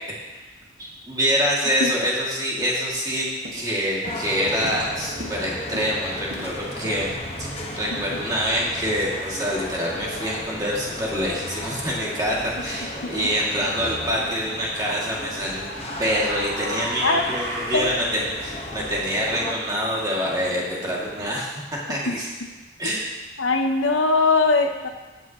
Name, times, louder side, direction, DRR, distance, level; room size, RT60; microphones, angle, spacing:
voice 1, 0.8-7.1 7.4-7.5 7.7-15.7 16.0-22.3 22.8-23.0, equal, 20° right, -5 dB, 2.4 m, -26 dB
Walk footsteps, 2.9-3.1 3.4-3.8 4.1-8.7, equal, 80° right, 1.9 m, -40 dB
sound 1, 4.0-21.3, left 1 dB, 30° left, 1.3 m, -35 dB
sound 2, 13.8-14.1 15.2-17.9, right 1 dB, 60° right, 3.1 m, -35 dB
voice 2, 23.4-24.9, left 3 dB, 85° left, 5 dB, 0.9 m, -21 dB
15.0 x 9.2 x 3.1 m, 1.2 s
head